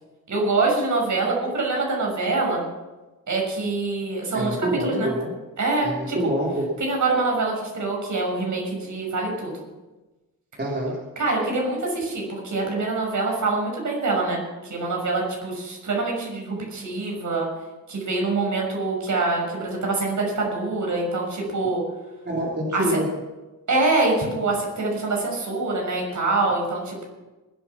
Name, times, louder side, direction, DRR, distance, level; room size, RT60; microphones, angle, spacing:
voice 1, 0.3-2.6 3.3-5.1 5.6-6.2 6.8-9.5 11.2-17.5 17.9-21.8 22.7-22.8 23.7-27.0, right 3 dB, 65° right, -1 dB, 6.6 m, -25 dB
voice 2, 4.3-5.3 5.8-6.7 10.6-11.0 22.2-23.1, right 1 dB, 30° right, -3 dB, 3.7 m, -26 dB
21.5 x 8.8 x 5.9 m, 1.1 s
cardioid pair, 80°, 33 cm